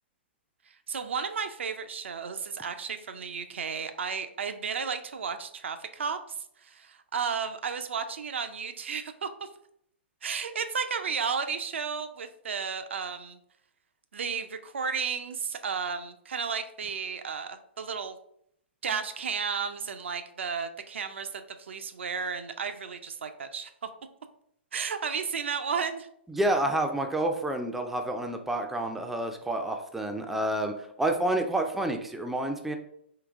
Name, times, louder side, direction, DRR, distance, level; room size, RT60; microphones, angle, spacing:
voice 1, 0.7-9.5 10.2-13.4 14.1-18.2 18.8-23.7 24.7-26.1, right 6 dB, 80° right, 8 dB, 0.4 m, -33 dB
voice 2, 26.3-32.8, right 1 dB, 5° right, 4 dB, 0.3 m, -29 dB
3.8 x 2.7 x 3.5 m, 0.71 s
hypercardioid pair, 130°, 6 cm